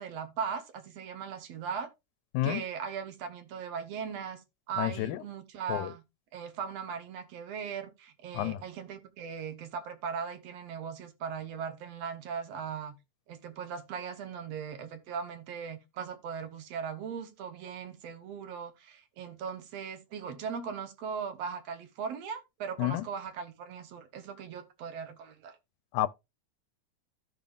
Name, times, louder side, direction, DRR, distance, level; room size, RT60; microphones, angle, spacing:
voice 1, 0.0-1.9 2.4-4.4 4.7-6.0 6.3-13.0 13.3-25.6, right 6 dB, 65° right, 2.0 m, -39 dB
voice 2, 4.8-5.2 5.7-5.9 8.3-8.6 22.8-23.0 25.9-26.1, left 15 dB, 85° left, 2.0 m, -30 dB
14.5 x 5.3 x 2.4 m
omnidirectional pair, 3.5 m